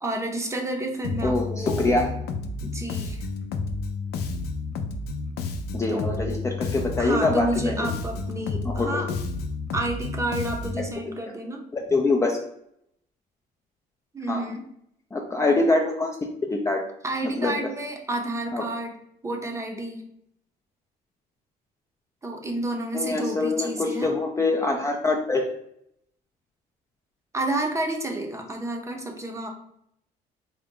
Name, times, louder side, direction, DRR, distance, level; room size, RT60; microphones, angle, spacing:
voice 1, 0.0-2.0 2.6-3.3 5.9-6.4 7.0-9.1 9.7-11.6 14.1-14.6 17.0-18.9 19.2-20.0 22.2-24.1 27.3-29.5, right 2 dB, 15° right, 2 dB, 0.7 m, -30 dB
Bass guitar, 1.0-10.9, left 4 dB, 75° left, 0.5 m, -31 dB
voice 2, 1.2-2.1 5.7-7.9 8.6-9.2 11.1-11.2 11.7-12.4 14.3-14.5 15.1-16.2 16.5-16.8 17.2-17.7 18.5-18.6 22.9-25.4, left 2 dB, 15° left, 1 dB, 0.4 m, -24 dB
3.9 x 2.2 x 3.7 m, 0.73 s
cardioid pair, 110°, 17 cm